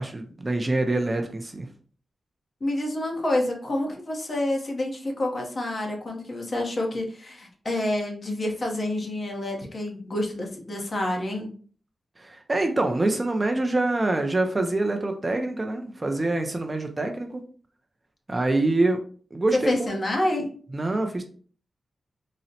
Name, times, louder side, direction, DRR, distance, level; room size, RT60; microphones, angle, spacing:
voice 1, 0.0-1.7 12.2-17.4 18.3-19.0 19.3-19.9 20.7-21.2, right 2 dB, 25° right, 4 dB, 0.4 m, -25 dB
voice 2, 2.6-11.5 19.6-20.5, left 1 dB, 40° left, 1 dB, 0.8 m, -28 dB
3.9 x 2.1 x 2.7 m, 0.44 s
wide cardioid pair, 120°, 0 cm